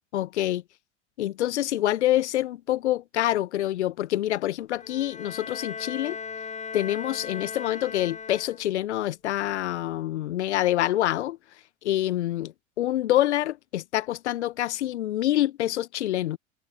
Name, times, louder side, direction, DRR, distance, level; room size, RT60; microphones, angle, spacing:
voice 1, 0.1-0.6 1.2-6.2 6.7-11.4 11.8-16.4, left 14 dB, 65° left, 1.0 m, -26 dB
Bowed string instrument, 4.8-8.9, left 6 dB, 20° left, 6.5 m, -38 dB
figure-of-eight pair, 80°, 37 cm